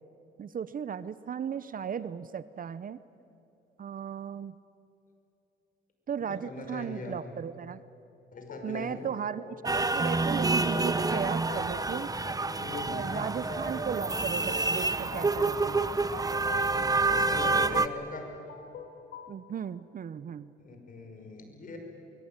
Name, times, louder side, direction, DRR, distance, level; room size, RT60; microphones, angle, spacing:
voice 1, 0.4-3.0 3.8-4.6 6.1-7.8 8.6-12.1 12.9-15.8 19.3-20.5, right 7 dB, 45° right, 16 dB, 0.7 m, -36 dB
voice 2, 6.3-7.2 8.3-9.0 12.6-13.1 16.9-18.3 20.6-21.8, left 3 dB, 45° left, 4 dB, 5.5 m, -41 dB
sound 1, 8.3-19.3, left 6 dB, 75° left, 2.1 m, -46 dB
sound 2, 9.7-17.9, right 3 dB, 20° right, 0.9 m, -28 dB
24.0 x 22.0 x 8.9 m, 2.9 s
cardioid pair, 90°, 20 cm